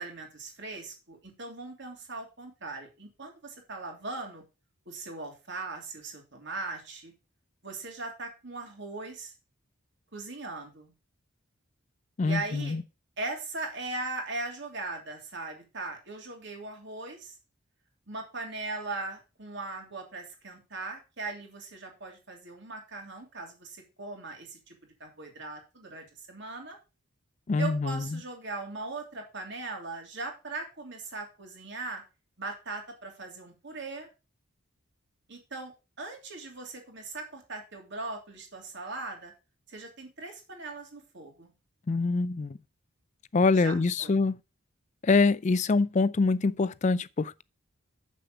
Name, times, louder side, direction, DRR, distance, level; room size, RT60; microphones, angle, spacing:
voice 1, 0.0-4.4 4.9-7.1 7.6-9.3 10.1-10.9 12.2-12.8 13.2-17.3 18.1-26.8 27.6-32.0 32.4-34.1 35.3-35.7 36.0-39.3 39.7-41.5 43.5-44.2, right 3 dB, 55° right, 2.9 m, -39 dB
voice 2, 12.2-12.8 27.5-28.2 41.9-42.6 43.3-44.4 45.0-47.4, left 3 dB, 35° left, 0.4 m, -25 dB
7.5 x 6.8 x 5.1 m
head